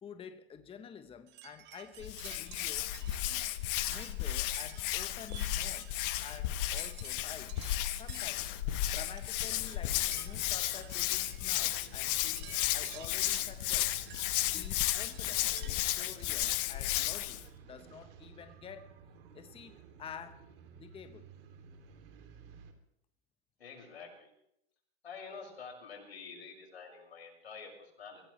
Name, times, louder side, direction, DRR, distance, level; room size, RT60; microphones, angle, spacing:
voice 1, 0.0-2.9 3.3-3.5 3.9-7.5 7.9-8.5 8.9-14.0 14.5-17.4 17.7-18.9 19.3-20.4 20.7-21.2, left 7 dB, 20° left, 1.0 m, -49 dB
sound 1, 1.3-16.5, right 12 dB, 35° right, 1.3 m, -53 dB
Hands, 2.0-17.4, left 14 dB, 60° left, 1.4 m, -34 dB
sound 2, 10.0-22.7, right 6 dB, 65° right, 3.0 m, -55 dB
voice 2, 23.6-24.3 25.0-28.2, left 5 dB, 90° left, 6.4 m, -48 dB
25.0 x 16.5 x 3.3 m
hypercardioid pair, 115°, 31 cm